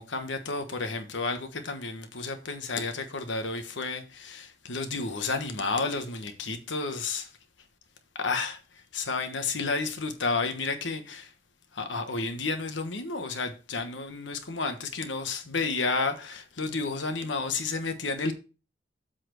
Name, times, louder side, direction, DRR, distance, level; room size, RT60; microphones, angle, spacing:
voice 1, 0.0-7.3 8.1-8.6 8.9-11.3 11.7-18.3, left 3 dB, 90° left, 1.2 m, -31 dB
7.8 x 4.3 x 6.2 m
head